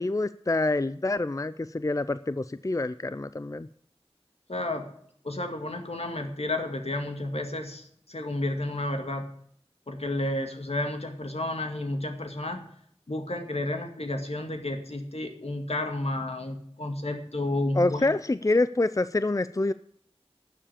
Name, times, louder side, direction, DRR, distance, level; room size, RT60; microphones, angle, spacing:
voice 1, 0.0-3.7 17.8-19.7, left 2 dB, 30° left, 14 dB, 0.4 m, -26 dB
voice 2, 4.5-4.9 5.2-9.3 9.9-12.7 13.1-18.1, left 1 dB, 75° left, 5 dB, 2.2 m, -31 dB
12.0 x 7.5 x 8.6 m, 0.65 s
wide cardioid pair, 40°, 11 cm